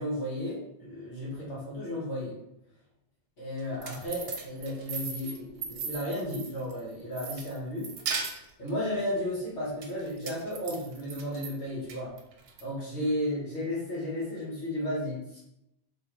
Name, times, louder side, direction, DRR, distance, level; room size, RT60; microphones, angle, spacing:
voice 1, 0.0-2.3 3.4-7.9 8.6-12.1 12.6-15.4, left 1 dB, 80° left, -7 dB, 1.5 m, -33 dB
sound 1, 3.6-6.8 7.2-8.7 9.8-11.5 11.9-12.6, right 5 dB, 65° right, 0.8 m, -37 dB
3.6 x 3.0 x 3.0 m, 0.83 s
omnidirectional pair, 1.1 m